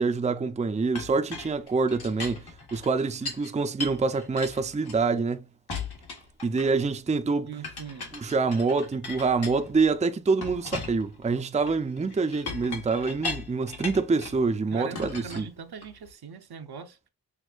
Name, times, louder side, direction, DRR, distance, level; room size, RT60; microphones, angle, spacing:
voice 1, 0.0-5.4 6.4-7.5 8.1-15.5, right 4 dB, 20° right, 0.4 m, -26 dB
Chink clink, 0.9-3.5 3.8-5.3 5.7-6.9 7.6-9.9 10.4-14.4 14.9-16.1, left 4 dB, 80° left, 1.4 m, -38 dB
voice 2, 7.4-8.1 14.7-17.1, right 6 dB, 80° right, 0.8 m, -41 dB
6.1 x 2.6 x 2.4 m
wide cardioid pair, 105°, 38 cm